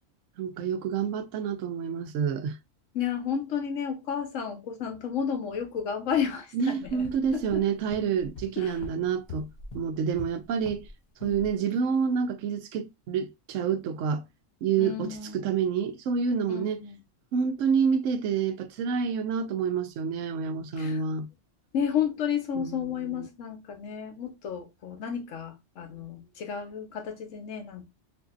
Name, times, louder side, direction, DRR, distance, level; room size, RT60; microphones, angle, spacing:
voice 1, 0.4-2.6 6.5-9.5 9.7-10.8 11.2-14.2 14.6-16.8 17.3-21.3 22.6-23.3, right 6 dB, 85° right, 1.0 m, -28 dB
voice 2, 2.9-7.6 8.6-8.8 11.2-11.6 14.8-15.6 16.5-17.0 20.8-21.0 21.7-27.9, left 8 dB, 80° left, 1.2 m, -32 dB
sound 1, 6.8-10.9 11.2-11.5, left 3 dB, 50° left, 0.6 m, -44 dB
3.7 x 2.7 x 2.4 m
omnidirectional pair, 1.3 m